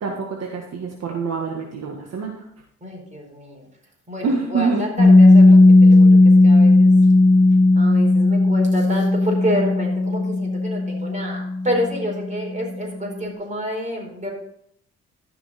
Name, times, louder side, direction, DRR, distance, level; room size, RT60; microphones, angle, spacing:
voice 1, 0.0-2.4 4.2-4.8, right 4 dB, 55° right, 0 dB, 1.7 m, -25 dB
voice 2, 2.8-3.7 4.1-6.9 7.7-14.3, equal, 25° right, 0 dB, 4.6 m, -28 dB
Piano, 5.0-12.3, left 2 dB, 35° left, 2.1 m, -14 dB
14.0 x 6.0 x 4.2 m, 0.70 s
cardioid pair, 90°, 30 cm